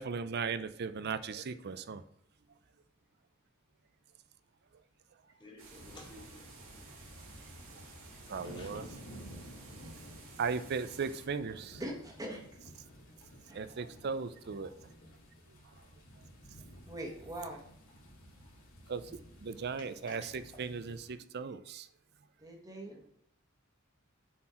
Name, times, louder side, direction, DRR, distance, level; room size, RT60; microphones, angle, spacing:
voice 1, 0.0-2.0 8.3-8.9 10.4-11.8 13.5-14.7 18.9-21.9, right 5 dB, 50° right, 13 dB, 0.5 m, -37 dB
voice 2, 5.4-6.5 8.4-8.8 20.1-20.2 22.8-23.1, left 2 dB, 20° left, -2 dB, 2.0 m, -53 dB
sound 1, 5.6-11.3, right 4 dB, 70° right, 1.9 m, -54 dB
sound 2, 5.7-21.1, equal, 70° left, 2.3 m, -53 dB
voice 3, 11.8-12.4 13.5-13.7 16.9-17.6 22.4-22.9, right 1 dB, 15° right, 0 dB, 1.3 m, -42 dB
7.4 x 4.4 x 4.3 m, 0.71 s
head